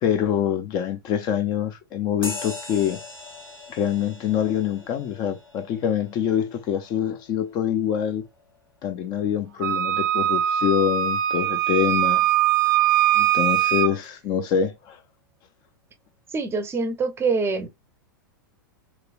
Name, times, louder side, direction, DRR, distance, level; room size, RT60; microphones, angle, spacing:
voice 1, 0.0-3.0 3.7-8.2 8.8-12.2 13.1-15.0, left 9 dB, 40° left, 0.5 m, -25 dB
sound 1, 2.2-10.1, left 3 dB, 85° left, 1.7 m, -41 dB
Wind instrument woodwind instrument, 9.6-13.9, right 12 dB, 65° right, 0.4 m, -21 dB
voice 2, 16.3-17.7, right 4 dB, 20° right, 0.6 m, -25 dB
3.2 x 2.9 x 2.4 m
figure-of-eight pair, 95°, 11 cm